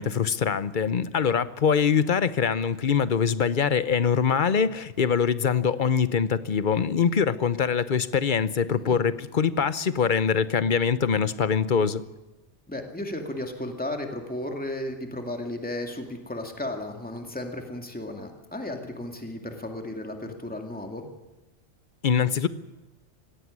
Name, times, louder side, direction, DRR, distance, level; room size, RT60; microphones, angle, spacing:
voice 1, 0.0-12.0 22.0-22.5, left 6 dB, 50° left, 15 dB, 0.9 m, -23 dB
voice 2, 12.7-21.1, left 1 dB, 5° left, 3 dB, 2.2 m, -34 dB
18.0 x 15.5 x 9.7 m, 1.1 s
omnidirectional pair, 1.2 m